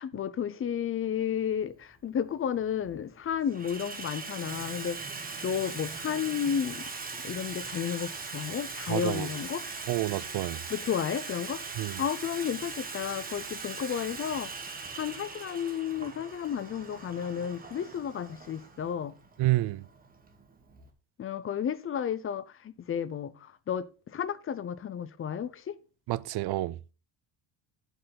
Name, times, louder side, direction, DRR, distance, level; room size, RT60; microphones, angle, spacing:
voice 1, 0.0-6.8 7.2-9.6 10.7-11.6 12.0-14.5 14.9-19.1 21.2-25.7, left 8 dB, 30° left, 0.5 m, -32 dB
Water tap faucet / Sink (filling or washing), 1.5-1.6 2.6-3.0 3.3-20.9, right 4 dB, 20° right, 1.4 m, -40 dB
voice 2, 8.9-9.3 9.9-10.6 11.8-12.0 19.4-19.8 26.1-26.8, right 17 dB, 55° right, 0.5 m, -29 dB
9.1 x 8.0 x 3.9 m
cardioid pair, 160°, 48 cm